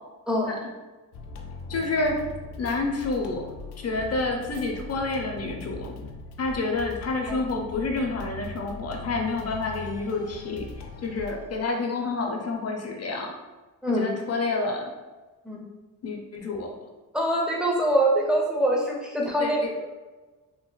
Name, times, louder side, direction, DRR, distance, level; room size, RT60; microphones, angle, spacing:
sound 1, 1.1-11.5, left 3 dB, 85° left, 0.5 m, -40 dB
voice 1, 1.7-2.2 2.6-3.5 3.8-5.9 6.4-10.7 11.0-13.3 13.9-14.8 16.0-16.7 19.4-19.7, left 3 dB, 40° left, 2 dB, 0.6 m, -28 dB
voice 2, 17.1-19.9, right 1 dB, ahead, -2 dB, 0.6 m, -24 dB
3.0 x 2.9 x 2.2 m, 1.2 s
cardioid pair, 95°, 38 cm